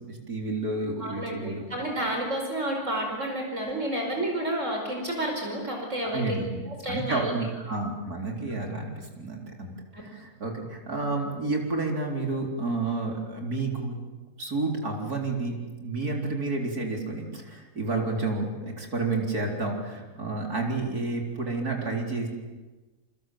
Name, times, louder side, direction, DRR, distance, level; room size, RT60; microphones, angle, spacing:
voice 1, 0.1-1.7 6.0-6.6 6.9-9.7 10.0-14.0 14.4-15.5 15.8-22.3, right 3 dB, 80° right, 1 dB, 4.6 m, -30 dB
voice 2, 1.0-6.4 6.7-7.3 9.9-10.0, right 1 dB, 50° right, 1 dB, 5.4 m, -30 dB
28.5 x 25.5 x 7.7 m, 1.2 s
omnidirectional pair, 1.6 m